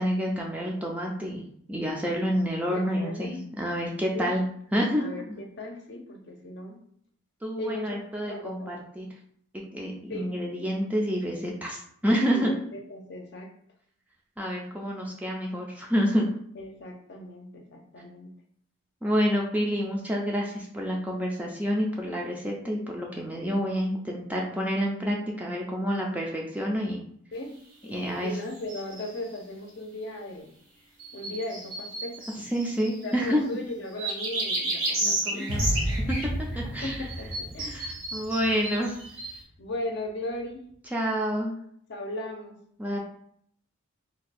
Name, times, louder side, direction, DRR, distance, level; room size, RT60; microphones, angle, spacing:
voice 1, 0.0-1.4 1.7-4.4 4.7-5.1 7.4-9.1 9.5-12.5 14.4-16.3 19.0-27.0 27.9-28.3 32.4-33.4 35.0-36.2 36.6-37.0 37.7-39.0 40.9-41.5 42.8-43.0, equal, 5° right, -2 dB, 0.4 m, -28 dB
voice 2, 2.7-3.5 4.1-4.3 5.0-6.8 7.6-8.0 8.3-8.8 10.1-10.3 12.3-13.5 16.6-18.3 27.3-27.6 27.8-27.9 28.2-30.5 31.1-32.3 33.0-35.5 36.6-37.8 39.6-40.6 41.9-42.6, left 1 dB, 55° left, 2 dB, 0.6 m, -37 dB
sound 1, 28.6-29.3 31.0-33.2 34.0-36.3 37.1-39.4, right 1 dB, 85° right, 1.0 m, -32 dB
sound 2, 35.5-38.7 38.9-39.2, equal, 60° right, 0.8 m, -31 dB
2.6 x 2.3 x 4.1 m, 0.66 s
head